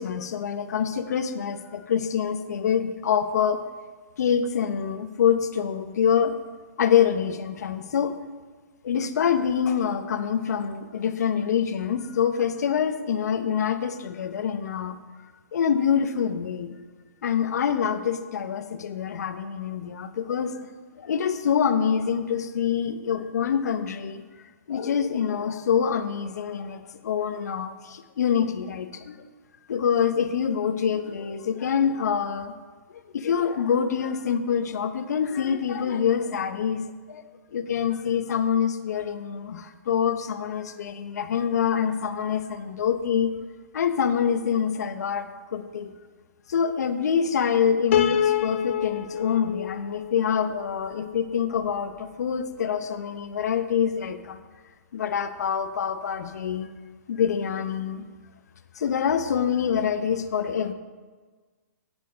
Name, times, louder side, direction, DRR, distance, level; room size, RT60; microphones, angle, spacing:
voice 1, 0.0-3.6 4.2-6.4 6.8-8.2 8.8-15.0 15.5-16.8 17.2-20.7 21.0-24.2 24.7-29.2 29.7-32.5 33.1-43.3 43.7-45.9 46.5-54.4 54.9-56.7 57.1-58.1 58.7-60.7, left 7 dB, 65° left, 9 dB, 0.8 m, -26 dB
Piano, 47.9-51.1, left 9 dB, 45° left, 0.4 m, -27 dB
9.6 x 6.3 x 5.2 m, 1.4 s
hypercardioid pair, 160°, 9 cm